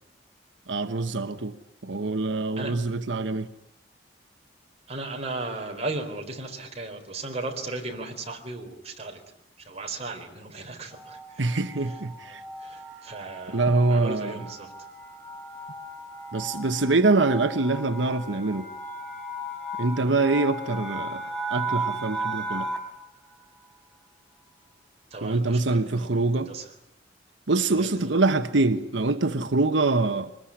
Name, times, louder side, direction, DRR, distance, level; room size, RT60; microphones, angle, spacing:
voice 1, 0.7-1.5 1.8-3.5 11.4-12.4 13.5-14.3 16.3-18.7 19.8-21.2 21.5-22.7 25.2-26.5 27.5-30.3, right 3 dB, 90° right, 1.1 m, -24 dB
voice 2, 4.9-9.2 9.6-11.4 11.9-14.7 25.1-26.7 27.6-28.0, right 2 dB, 35° right, 4.1 m, -36 dB
sound 1, 10.9-23.0, right 2 dB, 5° left, 4.4 m, -36 dB
24.5 x 20.5 x 10.0 m
head